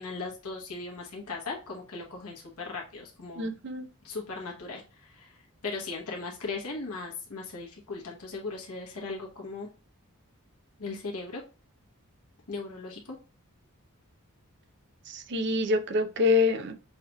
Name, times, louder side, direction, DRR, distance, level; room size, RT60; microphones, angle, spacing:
voice 1, 0.0-3.5 4.0-5.4 5.6-9.7 10.8-11.4 12.5-13.2, left 3 dB, 80° left, -1 dB, 1.1 m, -38 dB
voice 2, 3.4-3.8 15.3-16.7, left 3 dB, 55° right, 8 dB, 0.6 m, -25 dB
5.6 x 2.9 x 2.2 m, 0.33 s
head